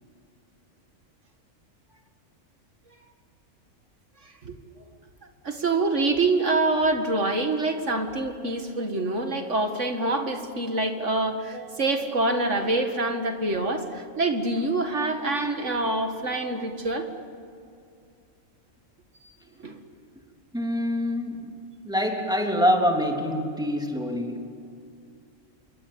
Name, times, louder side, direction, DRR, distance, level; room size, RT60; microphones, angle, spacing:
voice 1, 5.4-17.1 19.6-19.8, right 2 dB, 55° right, 5 dB, 2.3 m, -26 dB
voice 2, 20.5-21.5 21.8-24.4, equal, 5° right, 1 dB, 3.2 m, -25 dB
28.0 x 23.5 x 8.7 m, 2.5 s
omnidirectional pair, 1.5 m